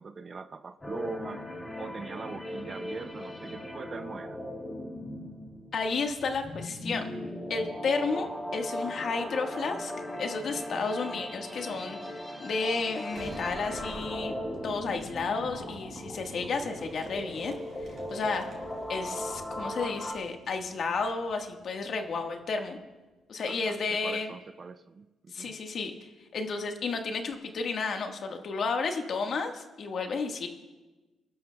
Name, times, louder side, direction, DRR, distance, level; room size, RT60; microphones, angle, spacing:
voice 1, 0.0-1.4 1.8-4.4 23.5-25.5, right 5 dB, 40° right, 11 dB, 0.6 m, -42 dB
sound 1, 0.8-20.1, left 1 dB, 15° left, 2.9 m, -38 dB
voice 2, 5.7-7.1 7.5-9.9 10.2-14.4 14.6-17.6 17.8-18.5 18.9-22.8 23.3-24.3 25.3-30.5, left 4 dB, 55° left, 4 dB, 1.5 m, -32 dB
sound 2, 12.2-21.0, left 3 dB, 90° left, 4.5 m, -55 dB
Boom, 13.1-22.7, right 2 dB, 55° right, 3.8 m, -49 dB
24.5 x 13.0 x 2.3 m, 1.2 s
cardioid pair, 90°, 0 cm